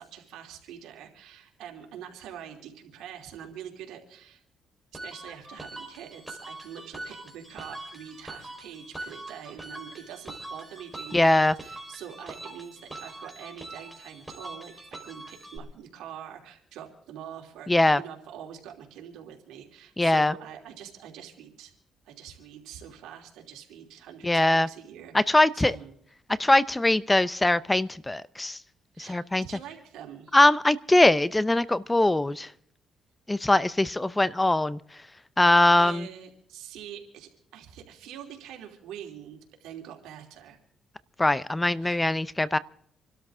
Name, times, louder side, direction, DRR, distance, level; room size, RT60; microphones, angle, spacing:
voice 1, 0.0-4.4 5.0-21.7 22.0-25.9 28.9-30.4 35.7-40.6 41.8-42.0, right 9 dB, 90° right, 2 dB, 3.0 m, -44 dB
sound 1, 4.9-15.6, right 2 dB, 5° right, 4.4 m, -43 dB
voice 2, 11.1-11.5 17.7-18.0 20.0-20.3 24.2-24.7 25.1-25.8 26.4-28.6 29.0-29.5 30.3-32.5 33.3-34.8 35.4-36.1 41.2-42.6, left 2 dB, 15° left, 19 dB, 0.6 m, -22 dB
27.0 x 12.5 x 3.7 m, 0.69 s
cardioid pair, 90°, 0 cm